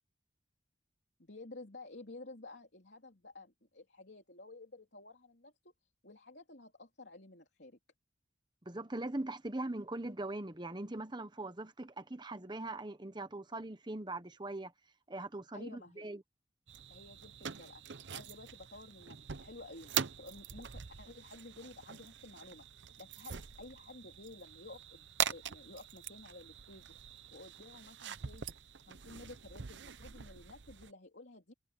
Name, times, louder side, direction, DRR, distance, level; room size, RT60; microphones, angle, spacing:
voice 1, 1.2-7.8 15.5-16.1 16.9-17.8 18.1-28.5 28.8-31.5, left 2 dB, 60° left, 3.5 m, -53 dB
voice 2, 8.7-14.7 15.1-16.2, right 2 dB, 25° right, 1.2 m, -41 dB
sound 1, 16.7-30.9, right 8 dB, 70° right, 0.8 m, -43 dB
head